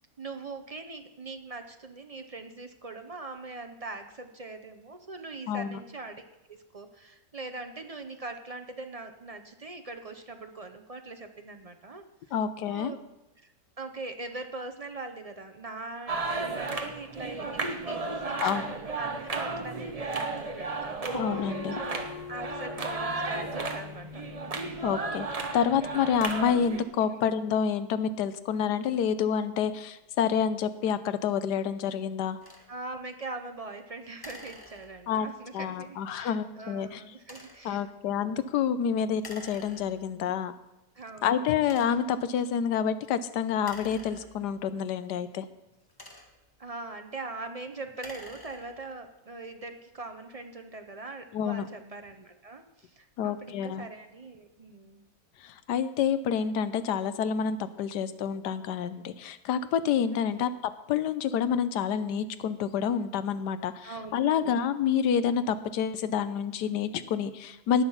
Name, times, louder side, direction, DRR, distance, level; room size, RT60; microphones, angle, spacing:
voice 1, 0.2-6.2 6.5-12.0 12.7-13.0 13.4-20.7 21.4-21.5 21.8-24.2 27.0-27.2 32.7-37.8 40.9-41.5 46.6-55.0 60.1-60.4 63.8-64.6, right 3 dB, 45° right, 6 dB, 0.5 m, -42 dB
voice 2, 5.5-5.8 12.3-12.9 18.4-18.7 21.1-21.8 24.8-32.4 35.1-35.3 35.5-37.0 37.6-40.5 41.2-45.5 51.3-51.7 53.2-53.9 55.4-60.5 60.9-67.8, left 8 dB, 75° left, 13 dB, 1.3 m, -28 dB
sound 1, 16.1-26.8, right 3 dB, 25° right, 0.9 m, -34 dB
sound 2, 21.3-26.4, left 7 dB, 55° left, 2.8 m, -45 dB
sound 3, 32.4-32.7 34.2-35.2 37.2-37.7 39.2-40.2 40.9-41.0 41.6-42.2 43.6-44.7 45.7-46.6 47.8-48.9, left 1 dB, 15° left, 1.2 m, -48 dB
18.5 x 6.5 x 5.6 m, 0.99 s
omnidirectional pair, 1.8 m